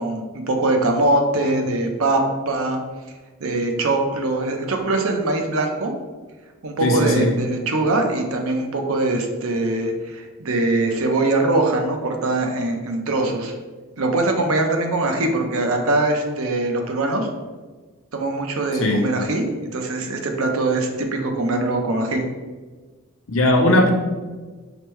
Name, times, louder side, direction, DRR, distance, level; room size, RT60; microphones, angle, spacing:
voice 1, 0.0-2.8 3.4-5.9 6.6-13.5 14.0-17.3 18.1-22.3, right 2 dB, 75° right, 3 dB, 0.6 m, -22 dB
voice 2, 6.8-7.3 18.8-19.1 23.3-23.9, left 1 dB, 65° left, 2 dB, 0.7 m, -18 dB
5.0 x 2.1 x 4.5 m, 1.3 s
head